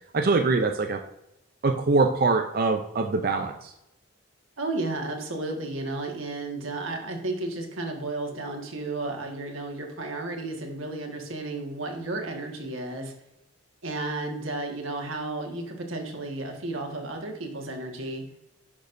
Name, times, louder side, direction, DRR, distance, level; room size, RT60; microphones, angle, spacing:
voice 1, 0.1-1.0 1.6-3.7, right 3 dB, 45° right, 5 dB, 0.5 m, -23 dB
voice 2, 4.6-13.1 13.8-18.2, right 2 dB, 90° right, 2 dB, 1.6 m, -33 dB
10.0 x 6.2 x 2.6 m, 0.88 s
head